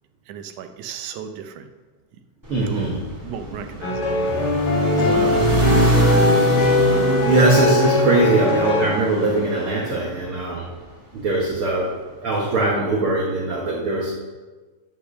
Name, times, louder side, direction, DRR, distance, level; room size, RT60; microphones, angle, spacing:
voice 1, 0.3-1.7 2.6-2.9 3.2-4.1, right 7 dB, 90° right, 8 dB, 2.3 m, -35 dB
sound 1, 2.4-10.8, right 1 dB, 10° right, 1.6 m, -24 dB
voice 2, 2.5-3.0 5.0-5.4 6.4-6.6 7.2-10.7 11.1-11.9 12.2-14.1, right 2 dB, 55° right, -3 dB, 1.7 m, -21 dB
sound 2, 3.8-8.9, left 2 dB, 75° left, 4.0 m, -20 dB
10.5 x 5.8 x 6.4 m, 1.3 s
omnidirectional pair, 3.4 m